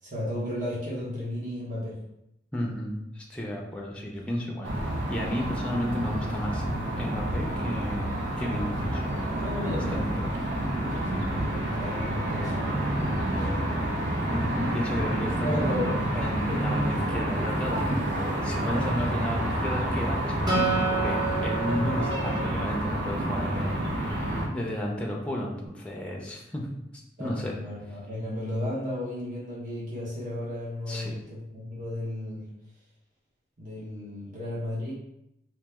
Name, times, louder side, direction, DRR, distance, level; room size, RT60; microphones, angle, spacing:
voice 1, 0.0-2.0 9.4-10.4 10.8-13.5 15.4-15.9 27.2-32.5 33.6-34.9, left 1 dB, 45° right, -7 dB, 1.0 m, -34 dB
voice 2, 2.5-6.6 7.0-8.1 8.4-9.0 9.6-10.3 14.3-17.9 18.4-26.7 27.2-27.5 30.9-31.2, equal, 5° left, -1 dB, 0.5 m, -33 dB
sound 1, 4.6-24.5, right 1 dB, 65° right, 0.7 m, -29 dB
Acoustic guitar, 20.5-23.9, right 3 dB, 25° right, 0.9 m, -31 dB
3.0 x 2.9 x 3.5 m, 0.84 s
head